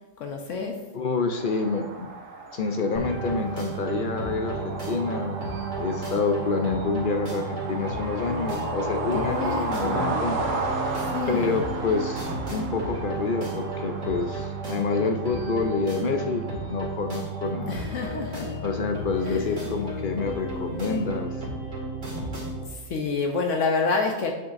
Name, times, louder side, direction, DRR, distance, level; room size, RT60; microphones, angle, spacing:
voice 1, 0.2-0.8 9.1-10.1 11.1-11.6 17.7-18.5 19.3-19.5 22.9-24.3, left 4 dB, 75° left, 2 dB, 1.1 m, -28 dB
voice 2, 0.9-2.1 2.5-5.5 5.8-10.4 11.3-17.8 18.6-21.4, left 4 dB, 55° left, 5 dB, 0.6 m, -28 dB
sound 1, 1.4-19.9, right 3 dB, 90° right, 1.2 m, -34 dB
sound 2, 2.9-22.6, right 2 dB, 70° right, 2.4 m, -33 dB
8.7 x 6.4 x 2.5 m, 1.1 s
omnidirectional pair, 1.3 m